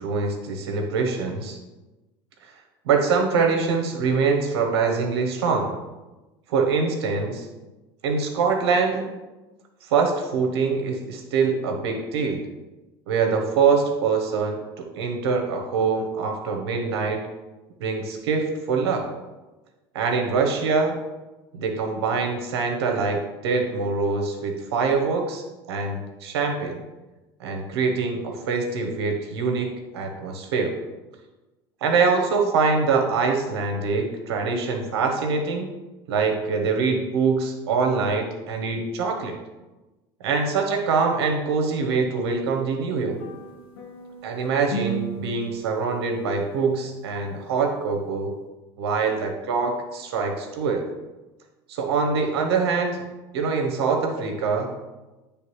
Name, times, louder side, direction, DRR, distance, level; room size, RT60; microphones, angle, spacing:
voice 1, 0.0-1.6 2.8-5.8 6.5-7.5 8.0-9.1 9.9-12.4 13.1-17.2 17.8-19.1 19.9-21.0 21.5-26.8 27.4-30.8 31.8-35.7 36.1-39.4 40.2-43.2 44.2-48.3 48.8-50.9 51.7-53.0 53.3-54.7, right 4 dB, 75° right, 4 dB, 1.0 m, -24 dB
sound 1, 43.1-46.5, right 4 dB, 80° left, 1.2 m, -35 dB
9.5 x 3.4 x 3.1 m, 1.1 s
hypercardioid pair, 80°, 13 cm